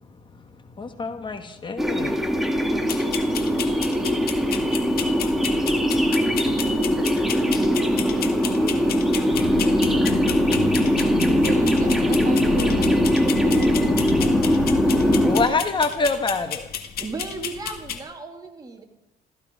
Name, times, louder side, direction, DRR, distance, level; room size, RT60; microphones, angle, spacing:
voice 1, 0.8-2.2 15.2-16.6, left 4 dB, 30° left, 8 dB, 1.3 m, -25 dB
sound 1, 1.8-15.5, equal, ahead, 1.9 m, -21 dB
sound 2, 2.9-18.0, left 8 dB, 65° left, 1.8 m, -33 dB
sound 3, 9.3-15.3, left 9 dB, 45° left, 0.6 m, -30 dB
voice 2, 11.3-14.0, right 6 dB, 50° right, 5 dB, 4.5 m, -37 dB
voice 3, 17.0-18.8, right 3 dB, 20° right, 2 dB, 2.7 m, -35 dB
15.0 x 15.0 x 5.3 m, 0.82 s
cardioid pair, 110°, 17 cm